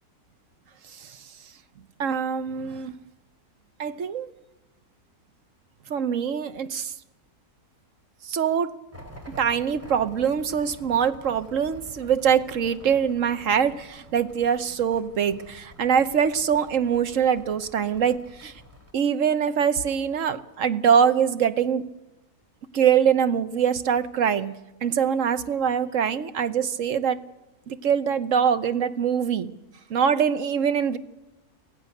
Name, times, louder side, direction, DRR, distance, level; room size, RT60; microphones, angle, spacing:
voice 1, 2.0-2.9 3.8-4.3 5.9-6.9 8.3-8.7 9.3-18.5 18.9-21.8 22.7-24.5 24.8-27.2 27.7-29.5 29.9-31.0, right 7 dB, 60° right, 12 dB, 1.3 m, -23 dB
sound 1, 8.9-18.9, left 1 dB, 10° right, 3.1 m, -48 dB
24.5 x 16.5 x 6.6 m, 1.0 s
omnidirectional pair, 1.6 m